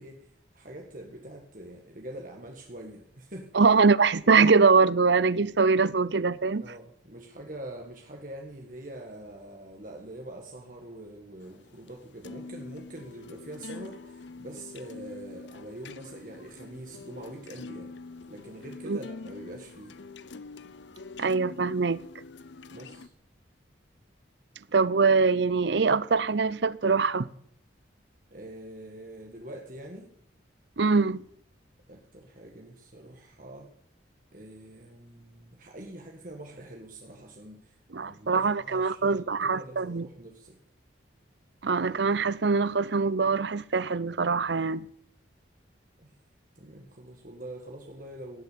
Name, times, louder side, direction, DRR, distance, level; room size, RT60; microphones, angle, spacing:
voice 1, 0.0-3.5 6.6-18.0 18.3-20.0 22.7-23.1 28.3-30.1 31.9-33.7 34.3-40.6 46.0-46.1 46.6-48.4, right 1 dB, 45° right, 1.8 m, -44 dB
voice 2, 3.5-6.6 18.9-19.0 21.2-22.0 24.7-27.3 30.8-31.2 37.9-40.1 41.6-44.9, right 4 dB, 65° right, 0.6 m, -23 dB
sound 1, 11.4-23.1, left 3 dB, 70° left, 0.7 m, -45 dB
17.5 x 8.0 x 8.5 m
head